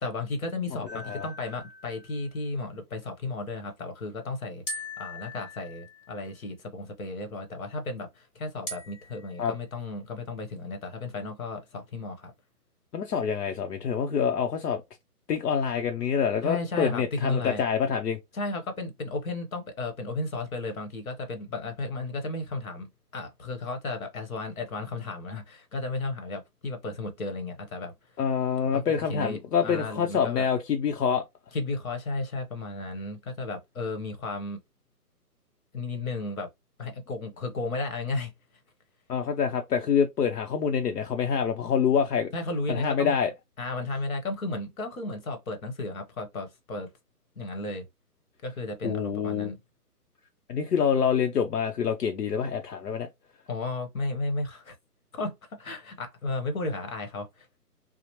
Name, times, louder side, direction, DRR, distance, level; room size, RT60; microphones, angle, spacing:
voice 1, 0.0-12.3 16.4-17.6 18.3-27.9 28.7-28.8 29.1-30.5 31.5-34.6 35.7-36.5 36.8-38.3 42.3-43.2 43.6-46.9 47.4-47.8 48.4-49.6 53.5-54.7 55.1-57.5, left 2 dB, 60° left, 1.0 m, -34 dB
voice 2, 0.9-1.2 9.4-9.5 12.9-14.8 15.3-18.2 28.2-31.2 39.1-42.3 42.7-43.3 48.8-49.5 50.5-53.1, left 7 dB, 80° left, 0.6 m, -26 dB
sound 1, 0.9-2.3 4.7-6.3 8.7-9.8, left 1 dB, 35° left, 1.0 m, -41 dB
2.9 x 2.0 x 2.8 m
hypercardioid pair, 165°, 47 cm